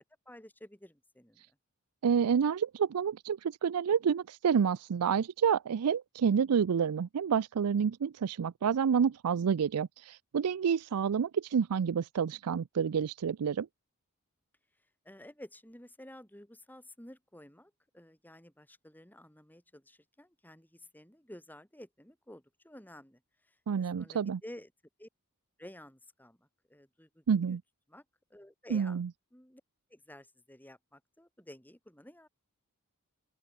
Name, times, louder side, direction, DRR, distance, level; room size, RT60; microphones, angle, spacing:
voice 1, 0.0-1.4 15.0-24.7 25.0-25.1 25.6-27.6 27.9-28.0 28.3-29.0 29.3-29.6 29.9-32.3, left 1 dB, 10° left, 7.5 m, -52 dB
voice 2, 2.0-13.7 23.7-24.4 27.3-27.6 28.7-29.1, right 7 dB, 85° right, 0.4 m, -29 dB
open air
head